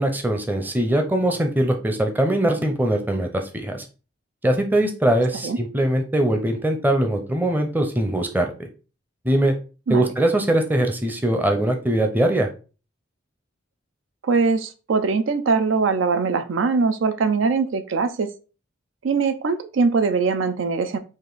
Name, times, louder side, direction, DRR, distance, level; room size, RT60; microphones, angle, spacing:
voice 1, 0.0-3.8 4.4-8.7 9.2-9.5 9.9-12.5, right 1 dB, 10° right, 4 dB, 0.6 m, -21 dB
voice 2, 14.2-18.3 19.0-21.0, right 4 dB, 75° right, 10 dB, 0.4 m, -21 dB
5.1 x 2.5 x 3.9 m, 0.35 s
head